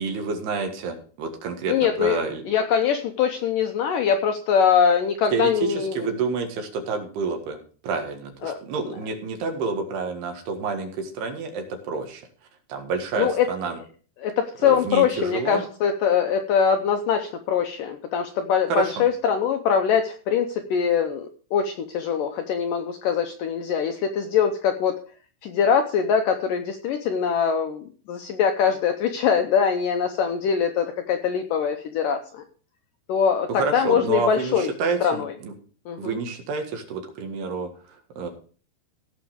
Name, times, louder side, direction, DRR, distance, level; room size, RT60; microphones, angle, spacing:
voice 1, 0.0-2.4 5.3-7.6 7.8-12.2 12.7-13.8 14.6-15.6 18.7-19.1 33.5-35.5 36.0-38.3, right 4 dB, 75° right, 4 dB, 3.7 m, -29 dB
voice 2, 1.7-6.1 8.4-8.6 8.8-8.9 13.2-13.5 14.2-25.0 25.4-32.4 33.1-34.7 35.0-35.3 35.9-36.2, left 7 dB, 80° left, 6 dB, 2.0 m, -23 dB
16.5 x 6.4 x 5.0 m, 0.41 s
omnidirectional pair, 4.8 m